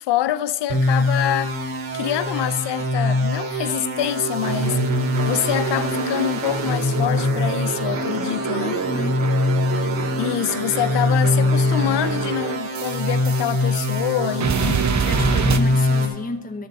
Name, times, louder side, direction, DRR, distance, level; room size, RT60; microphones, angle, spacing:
voice 1, 0.0-1.6 1.9-8.7 10.2-14.8, left 13 dB, 60° left, 0.6 m, -26 dB
sound 1, 0.7-16.1, left 1 dB, 70° right, 2.7 m, -23 dB
sound 2, 4.4-14.1 14.4-15.6, right 6 dB, 35° right, 1.0 m, -27 dB
voice 2, 8.5-9.2 15.0-16.7, left 2 dB, 20° left, 0.9 m, -31 dB
11.0 x 7.1 x 7.0 m
supercardioid pair, 60°, 47 cm